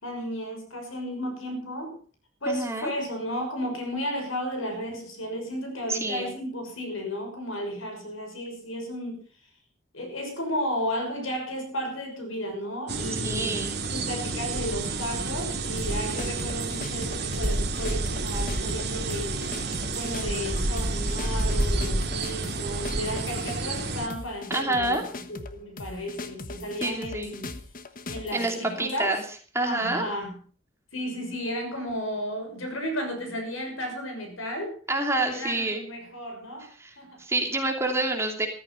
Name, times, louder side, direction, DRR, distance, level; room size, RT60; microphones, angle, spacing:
voice 1, 0.0-2.0 2.4-9.2 9.9-27.5 28.1-29.2 29.6-30.4 30.9-34.8 35.3-36.7 37.0-37.2, equal, 90° left, 5 dB, 6.2 m, -33 dB
voice 2, 2.5-2.9 5.9-6.3 13.2-13.7 24.5-25.0 26.8-27.3 28.3-29.2 29.5-30.0 34.9-35.8 36.8-36.9 37.2-38.5, right 2 dB, 15° right, 3 dB, 2.9 m, -27 dB
sound 1, 12.9-24.1, right 2 dB, 55° right, 2.4 m, -29 dB
sound 2, 15.8-29.1, left 2 dB, 45° left, 1.3 m, -40 dB
14.5 x 14.5 x 5.5 m, 0.41 s
head